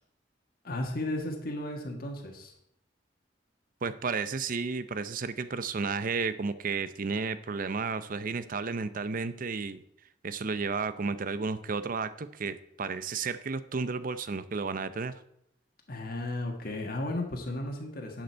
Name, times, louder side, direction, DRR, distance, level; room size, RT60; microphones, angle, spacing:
voice 1, 0.6-2.5 15.9-18.2, left 1 dB, 55° left, 2 dB, 1.6 m, -34 dB
voice 2, 3.8-9.8 10.2-15.2, right 4 dB, 50° right, 13 dB, 0.6 m, -32 dB
11.0 x 7.9 x 4.5 m, 0.75 s
head